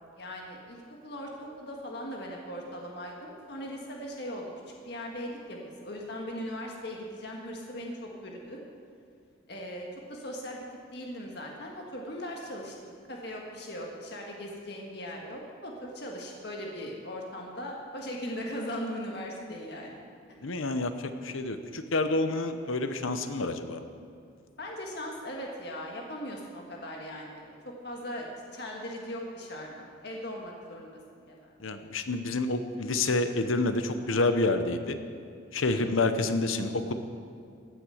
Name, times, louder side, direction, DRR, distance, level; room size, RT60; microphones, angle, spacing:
voice 1, 0.1-4.4 4.8-8.6 9.5-10.6 10.9-20.0 24.6-27.5 27.8-28.3 28.5-31.5 35.7-36.1, equal, 55° left, 0 dB, 1.7 m, -39 dB
voice 2, 20.4-23.8 31.6-35.0 35.5-36.9, left 2 dB, 85° left, 9 dB, 0.9 m, -28 dB
16.0 x 9.3 x 6.5 m, 2.3 s
head